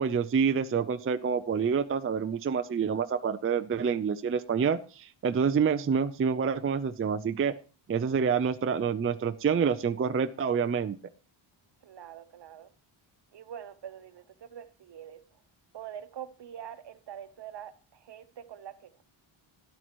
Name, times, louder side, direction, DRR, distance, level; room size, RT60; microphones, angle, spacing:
voice 1, 0.0-7.5 7.9-11.0, right 6 dB, 30° right, 9 dB, 0.5 m, -27 dB
voice 2, 11.8-12.7 13.3-15.2 15.7-19.0, right 9 dB, 60° right, 11 dB, 1.0 m, -44 dB
12.5 x 11.5 x 3.1 m, 0.38 s
wide cardioid pair, 120°, 48 cm